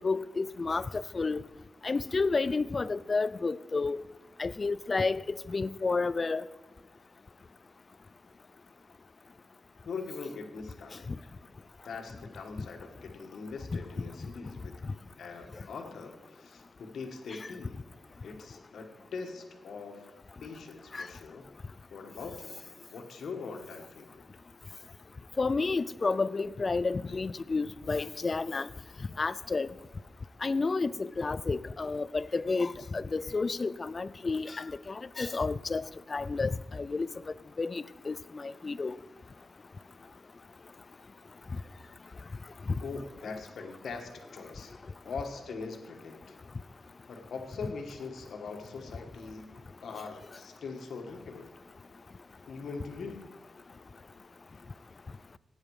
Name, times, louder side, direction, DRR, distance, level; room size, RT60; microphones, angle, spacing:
voice 1, 0.0-1.4 1.8-4.0 4.4-5.2 5.5-6.4 12.6-12.7 20.9-21.1 25.4-28.7 29.2-29.7 30.4-37.1 37.6-39.0 42.7-42.8, left 3 dB, 30° left, 0.3 m, -31 dB
voice 2, 9.8-11.3 11.8-14.7 15.2-17.8 18.2-21.5 21.9-22.6 22.9-24.2 42.8-44.7 45.0-46.4 47.1-49.5 49.8-51.5 52.5-53.2 54.5-54.6, left 4 dB, 70° left, 1.5 m, -42 dB
16.5 x 9.1 x 4.8 m
wide cardioid pair, 165°, 0 cm